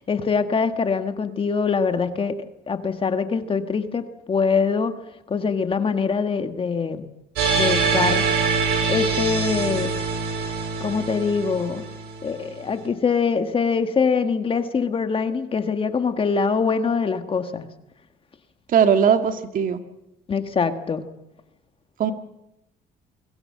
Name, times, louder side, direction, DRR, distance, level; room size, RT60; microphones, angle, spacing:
voice 1, 0.0-2.4 2.7-4.9 5.3-7.1 7.6-8.2 8.9-9.9 10.8-11.8 12.2-17.7 20.3-21.0, left 5 dB, 30° left, 8 dB, 1.7 m, -23 dB
sound 1, 7.4-12.4, right 4 dB, 85° right, 5.5 m, -24 dB
voice 2, 18.7-19.8 22.0-22.1, right 7 dB, 55° right, 7 dB, 1.9 m, -19 dB
22.5 x 16.5 x 7.7 m, 0.89 s
cardioid pair, 110°, 17 cm